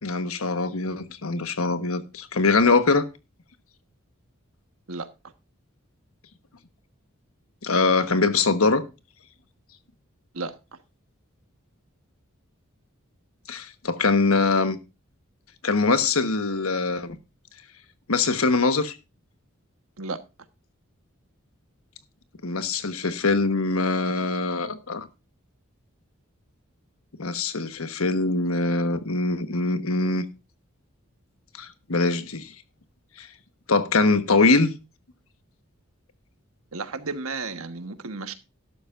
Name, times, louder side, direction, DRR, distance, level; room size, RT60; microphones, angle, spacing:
voice 1, 0.0-3.1 7.6-8.8 13.5-14.8 15.6-17.2 18.1-18.9 22.4-25.1 27.2-30.2 31.6-32.5 33.2-33.3 33.7-34.7, left 3 dB, 90° left, 1.2 m, -23 dB
voice 2, 36.7-38.3, right 3 dB, 90° right, 1.3 m, -33 dB
12.5 x 12.0 x 2.5 m
head